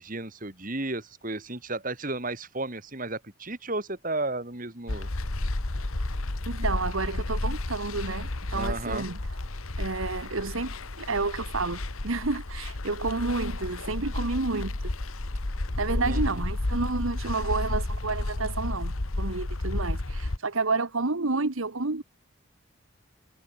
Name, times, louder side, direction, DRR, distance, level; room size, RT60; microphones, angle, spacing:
voice 1, 0.0-5.1 8.5-9.1 16.0-16.4, right 2 dB, 40° right, 2.7 m, -33 dB
Rumbling wind & ice skating, 4.9-20.4, left 2 dB, 85° left, 1.6 m, -32 dB
voice 2, 6.5-9.2 9.8-14.7 15.8-22.0, right 3 dB, 75° right, 1.4 m, -30 dB
head